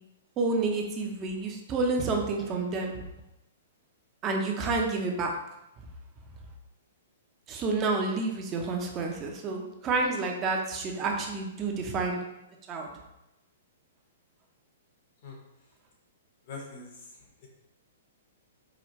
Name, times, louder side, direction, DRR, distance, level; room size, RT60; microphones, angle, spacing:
voice 1, 0.4-3.0 4.2-5.4 7.5-12.2 12.7-12.9, right 3 dB, 25° right, 2 dB, 0.7 m, -29 dB
voice 2, 16.4-17.5, left 4 dB, 50° left, -1 dB, 1.2 m, -44 dB
4.9 x 2.4 x 3.1 m, 0.91 s
hypercardioid pair, 135°, 0 cm